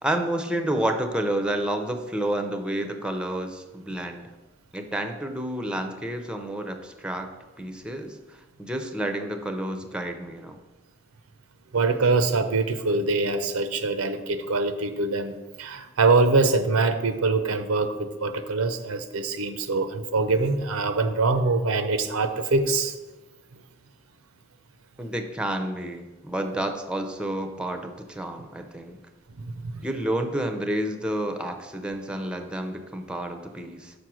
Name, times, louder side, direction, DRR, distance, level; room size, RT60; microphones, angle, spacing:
voice 1, 0.0-4.3 4.7-8.2 8.6-10.6 25.0-29.0 29.8-33.9, right 1 dB, 5° right, 6 dB, 0.5 m, -30 dB
voice 2, 11.7-22.9 29.4-29.8, right 3 dB, 90° right, 9 dB, 0.7 m, -24 dB
6.0 x 5.2 x 6.2 m, 1.2 s
head